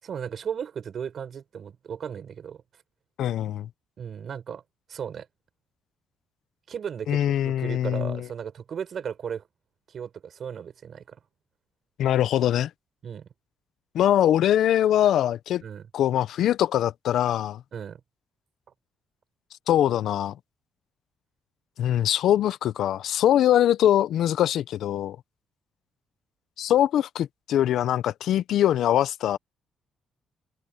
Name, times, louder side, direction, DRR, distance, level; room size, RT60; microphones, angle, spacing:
voice 1, 0.0-2.6 4.0-4.6 4.9-5.3 6.7-9.4 9.9-11.2 13.0-13.3 15.6-15.9 17.7-18.0, right 7 dB, 55° right, 7.1 m, -35 dB
voice 2, 3.2-3.7 7.1-8.3 12.0-12.7 13.9-15.6 15.9-17.6 19.7-20.4 21.8-25.2 26.6-29.4, left 11 dB, 75° left, 0.7 m, -22 dB
open air
cardioid pair, 90°, 0 cm